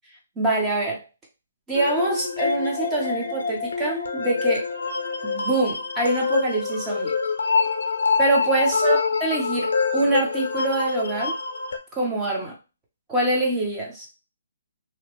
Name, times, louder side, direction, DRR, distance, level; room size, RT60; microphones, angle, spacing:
voice 1, 0.4-1.0 1.7-4.7 5.2-7.1 8.2-11.3 11.9-12.5 13.1-14.1, right 2 dB, 10° right, -2 dB, 0.6 m, -24 dB
sound 1, 1.7-11.8, left 4 dB, 75° left, 0.6 m, -25 dB
2.8 x 2.0 x 2.9 m, 0.30 s
hypercardioid pair, 165°, 0 cm